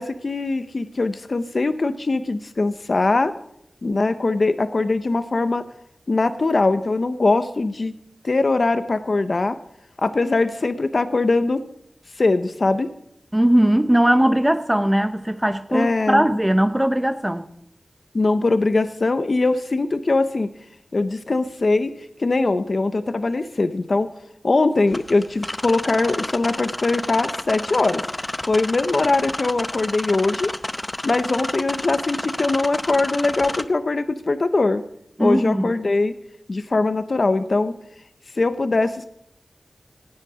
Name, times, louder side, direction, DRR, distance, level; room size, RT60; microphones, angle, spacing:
voice 1, 0.0-3.3 3.8-5.6 6.1-7.9 8.2-9.6 10.0-11.6 12.2-12.9 15.7-16.3 18.1-20.5 20.9-21.9 22.2-24.1 24.4-28.0 28.5-30.5 31.0-34.8 35.2-36.1 36.5-37.8 38.4-39.1, left 3 dB, 65° left, 0.7 m, -21 dB
voice 2, 13.3-17.5 35.2-35.7, right 1 dB, 10° right, 0.7 m, -19 dB
sound 1, 24.9-33.6, left 1 dB, 25° left, 0.8 m, -30 dB
16.5 x 9.7 x 4.9 m
wide cardioid pair, 60°, 0 cm